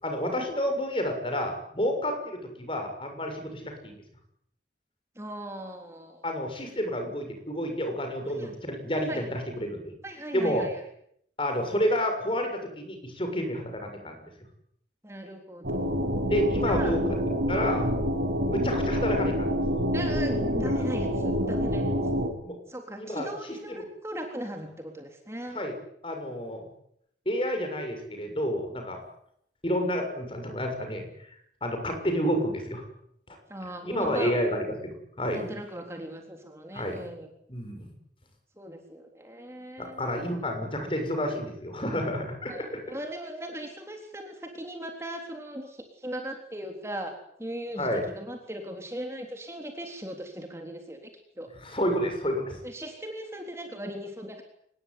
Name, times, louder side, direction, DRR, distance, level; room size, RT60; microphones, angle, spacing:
voice 1, 0.0-4.0 6.2-9.8 10.3-10.7 11.4-14.2 16.3-17.0 17.5-17.9 18.5-19.6 22.4-22.6 23.0-23.3 23.7-23.8 25.5-25.7 26.0-26.7 27.2-29.0 29.6-31.0 31.6-32.8 33.3-33.4 33.9-35.5 36.7-37.0 37.5-37.9 39.8-42.8 47.8-48.0 51.6-52.6, equal, 30° left, 5 dB, 6.7 m, -30 dB
voice 2, 5.2-6.2 8.4-8.5 9.1-9.2 10.0-10.8 15.0-16.1 16.7-17.0 17.6-17.8 19.9-21.9 22.7-25.6 33.5-34.4 35.3-37.3 38.6-40.2 42.5-47.1 47.4-51.1 51.4-51.5 52.6-54.4, right 1 dB, 15° right, 3 dB, 3.6 m, -38 dB
sound 1, 15.6-22.3, equal, 90° right, 6.5 m, -27 dB
25.0 x 21.0 x 9.5 m, 0.73 s
head